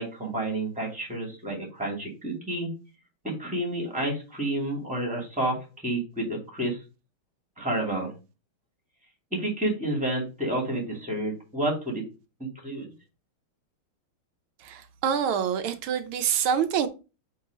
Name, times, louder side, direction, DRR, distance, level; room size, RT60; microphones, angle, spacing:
voice 1, 0.0-2.7 3.2-5.6 5.8-6.8 7.6-8.1 9.3-12.0 12.4-12.9, right 1 dB, 5° right, 2.2 m, -30 dB
voice 2, 14.6-16.9, right 8 dB, 80° right, 1.6 m, -26 dB
4.6 x 4.2 x 5.1 m
omnidirectional pair, 2.3 m